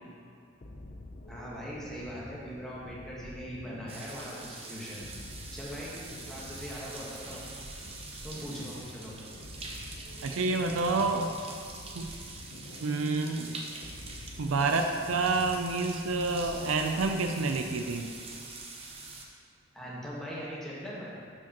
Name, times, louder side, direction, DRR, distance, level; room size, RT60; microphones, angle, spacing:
sound 1, 0.6-18.2, left 1 dB, 35° left, 0.6 m, -48 dB
voice 1, 1.3-5.0 5.5-6.0 6.3-7.4 8.2-9.2 19.7-21.2, equal, ahead, -7 dB, 1.3 m, -40 dB
sound 2, 3.9-19.2, right 3 dB, 30° right, 0.8 m, -44 dB
voice 2, 10.2-11.3 11.9-12.2 12.8-13.6 14.4-18.1, right 3 dB, 70° right, 5 dB, 0.5 m, -28 dB
11.5 x 4.9 x 2.9 m, 2.4 s
head